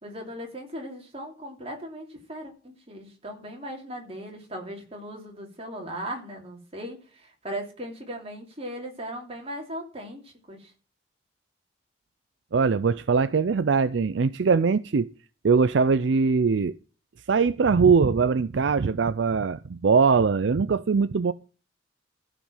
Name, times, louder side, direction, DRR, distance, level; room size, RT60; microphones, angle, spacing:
voice 1, 0.0-10.7, equal, 30° right, 3.0 m, -38 dB
voice 2, 12.5-15.1 15.4-16.8 17.3-21.3, right 5 dB, 70° right, 0.5 m, -21 dB
14.5 x 5.1 x 7.2 m
head